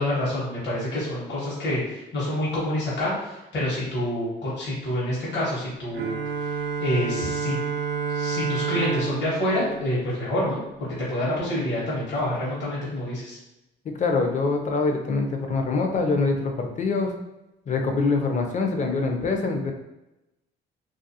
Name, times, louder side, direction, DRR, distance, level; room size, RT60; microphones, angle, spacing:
voice 1, 0.0-6.1 6.8-7.6 8.1-10.6 11.1-13.4, left 1 dB, 60° left, -7 dB, 1.0 m, -27 dB
Bowed string instrument, 5.9-10.8, right 6 dB, 60° right, 0.5 m, -30 dB
voice 2, 13.9-17.1 17.7-19.7, left 3 dB, 40° left, 3 dB, 0.5 m, -24 dB
2.4 x 2.3 x 2.7 m, 0.95 s
cardioid pair, 90°, 20 cm